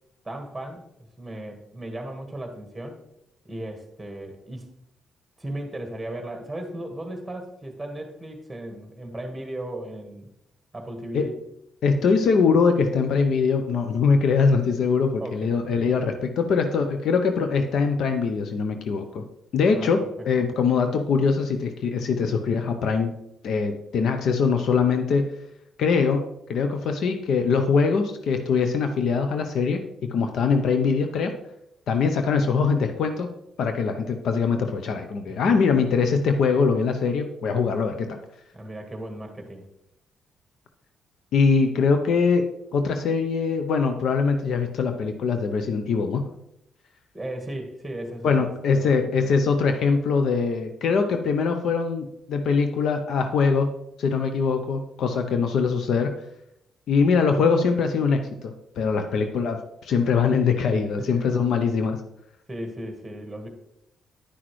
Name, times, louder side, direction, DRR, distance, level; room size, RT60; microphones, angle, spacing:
voice 1, 0.2-0.8 1.2-3.0 3.4-4.8 5.4-10.3 10.7-11.3 15.2-15.5 19.7-20.1 20.4-20.5 35.3-35.4 38.5-39.6 47.1-49.1 61.0-61.3 62.5-63.5, right 1 dB, 10° right, 4 dB, 1.6 m, -36 dB
voice 2, 11.8-19.2 19.5-23.1 23.4-25.3 25.8-29.8 30.1-31.3 31.9-33.3 33.6-38.2 41.3-42.5 42.7-46.3 48.2-53.7 54.0-56.1 56.9-62.0, left 5 dB, 70° left, 7 dB, 0.7 m, -22 dB
9.8 x 5.9 x 3.2 m, 0.81 s
cardioid pair, 80°, 0 cm